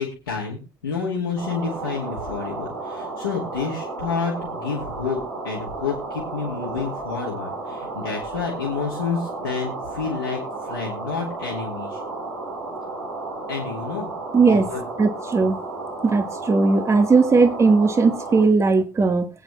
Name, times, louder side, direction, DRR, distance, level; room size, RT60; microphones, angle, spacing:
voice 1, 0.0-5.2 5.4-12.0 13.5-14.1 14.5-14.8, left 5 dB, 80° left, 2.2 m, -29 dB
sound 1, 1.4-18.4, right 3 dB, 75° right, 3.9 m, -33 dB
voice 2, 14.3-14.7 15.0-15.6 16.0-19.3, right 4 dB, 25° right, 1.5 m, -18 dB
22.0 x 9.1 x 2.3 m
figure-of-eight pair, 60°, 12 cm